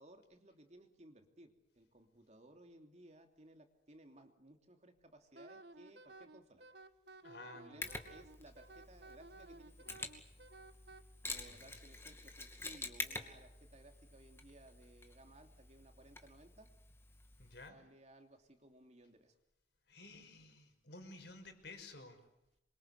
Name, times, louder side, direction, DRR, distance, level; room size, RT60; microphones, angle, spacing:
voice 1, 0.0-6.6 7.4-10.1 11.2-16.7 17.5-19.3, right 1 dB, 35° right, 5 dB, 2.9 m, -60 dB
Wind instrument woodwind instrument, 5.3-11.0, right 2 dB, 60° right, 1.4 m, -56 dB
voice 2, 7.2-7.9 11.3-11.7 17.4-17.8 19.9-22.2, left 2 dB, 65° left, 6 dB, 5.5 m, -54 dB
Mechanisms, 7.8-17.7, left 3 dB, 15° left, 2.5 m, -48 dB
27.5 x 23.5 x 8.2 m, 0.85 s
head